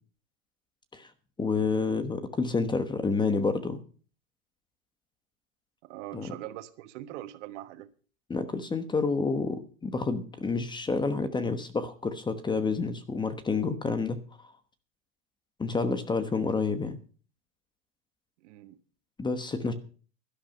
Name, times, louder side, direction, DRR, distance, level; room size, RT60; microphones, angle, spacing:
voice 1, 1.4-3.8 6.1-6.3 8.3-14.2 15.6-17.0 19.2-19.7, left 4 dB, 10° left, 1.1 m, -29 dB
voice 2, 5.8-7.9 18.4-18.8 19.6-19.7, right 14 dB, 60° right, 1.4 m, -42 dB
12.5 x 11.0 x 5.3 m
supercardioid pair, 130°, 41 cm